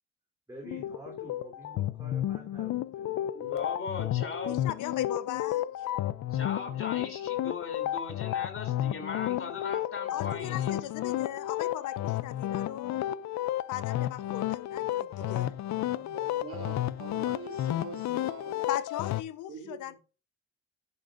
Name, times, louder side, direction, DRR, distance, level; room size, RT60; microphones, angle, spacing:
voice 1, 0.5-3.0 14.8-15.5 15.9-17.0, right 2 dB, 10° right, 3.6 m, -49 dB
sound 1, 0.6-19.2, left 13 dB, 65° left, 0.6 m, -32 dB
voice 2, 3.3-4.5 6.3-10.7, left 5 dB, 45° left, 3.4 m, -38 dB
voice 3, 4.4-5.7 10.1-13.0 13.7-15.5 18.7-20.0, left 12 dB, 85° left, 1.0 m, -38 dB
voice 4, 16.3-18.6 19.5-20.0, right 4 dB, 45° right, 3.0 m, -44 dB
11.0 x 8.5 x 2.6 m
cardioid pair, 90°, 30 cm